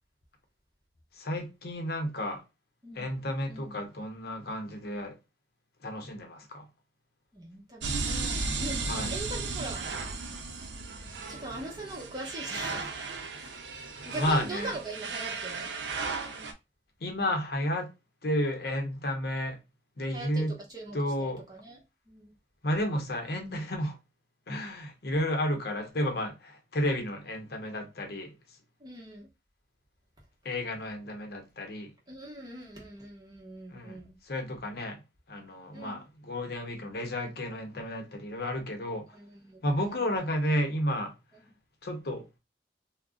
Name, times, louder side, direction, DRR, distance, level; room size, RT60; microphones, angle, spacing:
voice 1, 1.1-2.4 2.9-5.2 5.8-6.7 8.9-9.2 14.1-14.7 17.0-17.9 18.2-19.6 20.0-20.5 20.9-21.4 22.6-24.0 24.5-28.3 30.4-31.9 33.7-34.0 34.2-35.0 35.3-39.2 39.6-41.1 41.8-42.3, left 1 dB, 60° left, 0.7 m, -32 dB
voice 2, 3.5-3.8 7.3-9.9 10.9-12.9 13.3-13.7 14.0-15.7 20.1-21.8 22.1-22.3 28.8-29.3 32.1-34.2 35.7-36.0 39.1-40.1, right 2 dB, 25° right, 0.9 m, -42 dB
sound 1, 7.8-16.5, right 4 dB, 80° right, 0.5 m, -35 dB
2.4 x 2.1 x 3.5 m
head